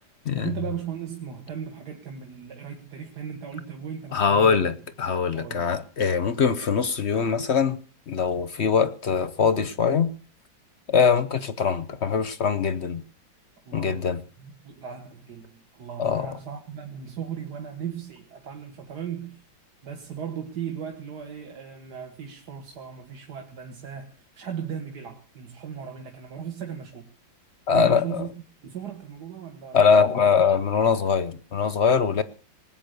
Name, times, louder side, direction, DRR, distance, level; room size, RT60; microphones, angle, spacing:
voice 1, 0.0-4.7 5.3-5.7 13.7-14.1 14.4-19.4 19.8-27.1 27.7-28.3 28.6-30.1, right 8 dB, 60° right, 2.0 m, -37 dB
voice 2, 4.1-7.8 8.1-10.1 10.9-13.0 13.7-14.2 16.0-16.3 27.7-28.2 29.7-32.2, left 6 dB, 50° left, 0.8 m, -22 dB
20.0 x 8.9 x 6.7 m
omnidirectional pair, 2.0 m